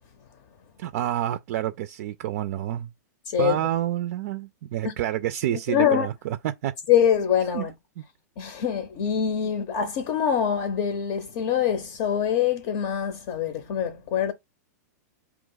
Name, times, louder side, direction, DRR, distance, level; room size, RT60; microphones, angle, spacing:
voice 1, 0.8-2.9 3.4-6.7 7.5-7.7 8.0-8.1, right 12 dB, 55° right, 0.4 m, -28 dB
voice 2, 3.3-3.6 4.8-4.9 5.7-6.1 6.9-7.7 8.4-14.3, left 8 dB, 45° left, 0.7 m, -24 dB
4.7 x 2.9 x 3.8 m
hypercardioid pair, 145°, 10 cm